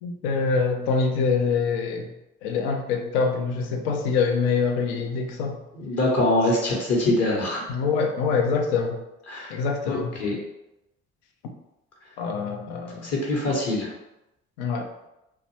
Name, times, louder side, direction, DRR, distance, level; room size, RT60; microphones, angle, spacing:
voice 1, 0.0-2.1 2.4-5.6 7.7-9.0 9.5-10.1 12.2-13.1 14.6-15.1, left 5 dB, 80° left, 3 dB, 0.5 m, -25 dB
voice 2, 5.7-7.7 9.3-9.5 9.9-10.4 13.0-13.9, left 2 dB, 50° left, -2 dB, 1.0 m, -24 dB
2.4 x 2.2 x 3.0 m, 0.90 s
hypercardioid pair, 50°, 31 cm